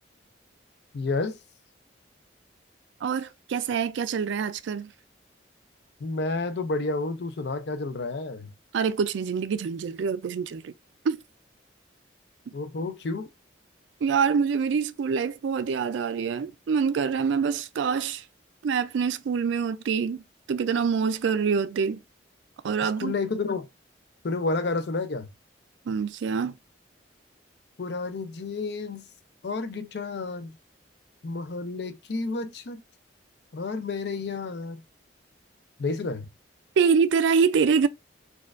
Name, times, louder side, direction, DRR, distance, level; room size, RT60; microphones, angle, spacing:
voice 1, 0.9-1.4 6.0-8.5 12.5-13.3 22.8-23.7 24.2-25.3 27.8-29.1 29.4-30.6 31.2-32.8 33.5-34.8 35.8-36.3, left 3 dB, 60° left, 0.5 m, -30 dB
voice 2, 3.0-4.9 8.7-10.7 11.1-11.2 14.0-18.2 18.6-22.0 22.6-23.1 25.9-26.5 36.8-37.9, right 6 dB, 75° right, 0.3 m, -25 dB
4.3 x 2.3 x 2.4 m
head